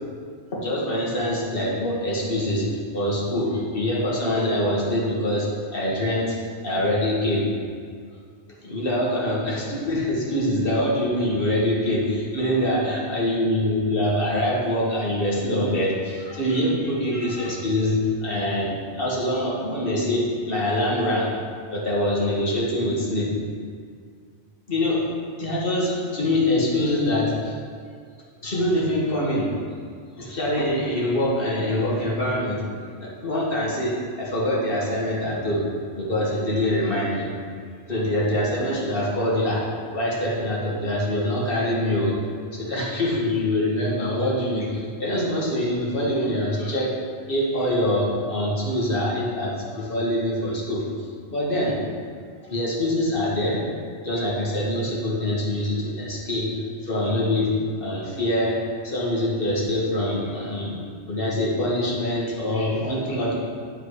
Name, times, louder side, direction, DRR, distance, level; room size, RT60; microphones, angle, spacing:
voice 1, 0.5-6.4 6.6-7.5 8.5-21.3 21.7-23.3 24.7-25.0 25.4-27.6 28.4-29.5 30.2-32.7 33.0-35.7 36.0-37.3 37.9-39.6 39.9-42.2 42.5-46.9 47.3-51.8 52.4-53.6 54.0-58.6 58.8-60.8 61.1-63.3, left 1 dB, 50° left, -5 dB, 1.7 m, -24 dB
10.0 x 3.9 x 4.8 m, 2.1 s
omnidirectional pair, 1.2 m